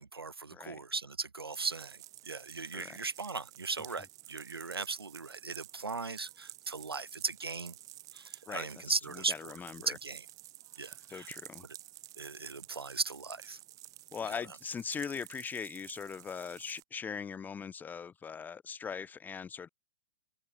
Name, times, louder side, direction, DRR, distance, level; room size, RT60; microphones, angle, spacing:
voice 1, 0.0-7.7 8.1-9.5 9.9-10.2 10.8-11.3 12.2-13.6, right 4 dB, 90° right, 0.6 m, -38 dB
sound 1, 1.5-16.8, right 16 dB, 30° right, 2.3 m, -51 dB
voice 2, 8.5-8.8 9.3-10.0 11.1-11.6 14.1-19.7, left 6 dB, 15° left, 1.6 m, -40 dB
figure-of-eight pair, 115°, 12 cm